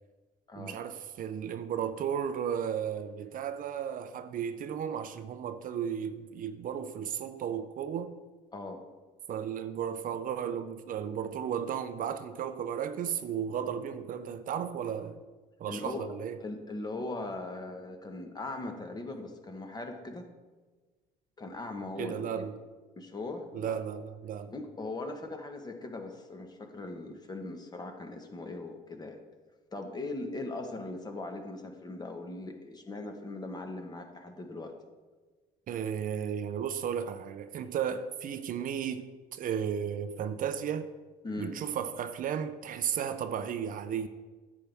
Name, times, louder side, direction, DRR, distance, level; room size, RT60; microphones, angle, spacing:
voice 1, 0.6-8.2 9.3-15.2 15.6-16.4 22.0-22.6 23.5-24.5 35.7-40.9 41.4-44.1, right 8 dB, 55° right, 0.5 m, -34 dB
voice 2, 15.7-16.1 16.4-20.3 21.4-22.5 23.0-23.8 24.5-29.2 29.7-34.7 41.2-41.6, left 2 dB, 25° left, 1.2 m, -39 dB
10.0 x 8.2 x 3.4 m
cardioid pair, 110°, 17 cm